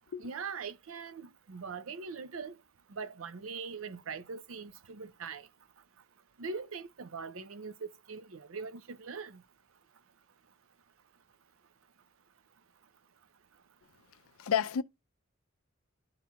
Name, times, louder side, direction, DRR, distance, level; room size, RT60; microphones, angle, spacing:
voice 1, 0.2-2.5 2.9-5.5 6.4-9.4, right 5 dB, 80° right, 0.6 m, -42 dB
voice 2, 14.4-14.8, left 8 dB, 90° left, 0.5 m, -29 dB
12.5 x 4.3 x 2.3 m
head